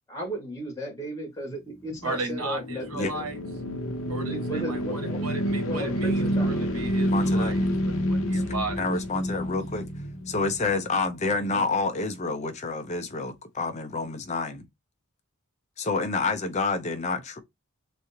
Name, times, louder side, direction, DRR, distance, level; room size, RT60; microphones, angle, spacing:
voice 1, 0.1-3.2 4.3-5.2 5.6-6.8 11.5-11.8, equal, 15° left, 1.7 m, -35 dB
sound 1, 1.9-11.2, equal, 65° left, 0.8 m, -28 dB
voice 2, 2.0-3.4 4.1-8.8, right 3 dB, 80° right, 1.4 m, -35 dB
voice 3, 7.1-7.5 8.3-8.4 8.8-9.9 10.3-14.6 15.8-17.4, left 3 dB, 30° left, 0.6 m, -28 dB
3.7 x 3.1 x 2.8 m
head